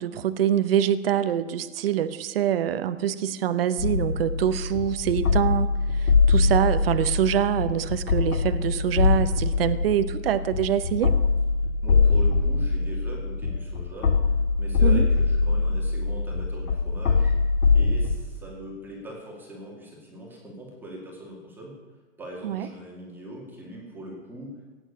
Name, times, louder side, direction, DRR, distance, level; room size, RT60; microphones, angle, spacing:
voice 1, 0.0-11.1 14.8-15.0 22.4-22.7, right 10 dB, 45° right, 13 dB, 0.8 m, -25 dB
sound 1, 3.8-18.2, left 4 dB, 90° left, 2.1 m, -23 dB
voice 2, 11.8-14.2 14.6-17.4 17.7-24.5, right 1 dB, 5° right, -2 dB, 2.2 m, -41 dB
17.5 x 9.1 x 8.4 m, 1.4 s
hypercardioid pair, 175°, 40 cm